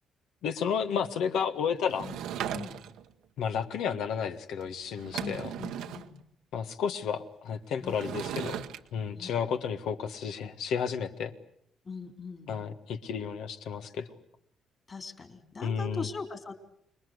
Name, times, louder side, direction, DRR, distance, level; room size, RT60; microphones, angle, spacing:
voice 1, 0.4-2.1 3.4-5.5 6.5-8.6 8.9-11.3 12.5-14.1 15.6-16.1, left 7 dB, 80° left, 8 dB, 1.6 m, -32 dB
Sliding door / Wood, 1.9-3.1 4.6-4.7 5.0-6.1 7.9-8.8, right 10 dB, 90° right, 1.2 m, -37 dB
voice 2, 5.2-6.2 7.8-8.0 9.1-9.3 11.9-12.7 14.9-16.5, left 4 dB, 35° left, 7 dB, 3.6 m, -40 dB
26.0 x 21.5 x 8.0 m, 0.71 s
cardioid pair, 90°, 0 cm